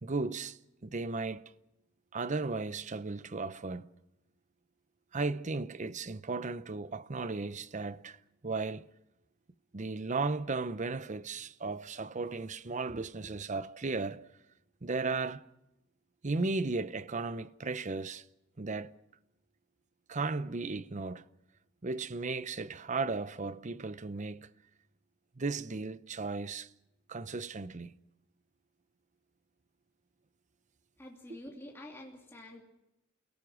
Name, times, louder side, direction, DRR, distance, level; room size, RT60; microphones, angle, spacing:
voice 1, 0.0-1.4 2.1-3.9 5.1-8.2 8.4-8.9 9.7-14.3 14.8-15.4 16.2-18.2 18.6-18.9 20.1-21.2 21.8-24.5 25.4-26.7 27.1-27.9 31.3-31.4, right 3 dB, 40° right, 0.7 m, -35 dB
voice 2, 31.0-32.6, left 1 dB, 15° left, 2.8 m, -48 dB
29.5 x 18.0 x 6.2 m
head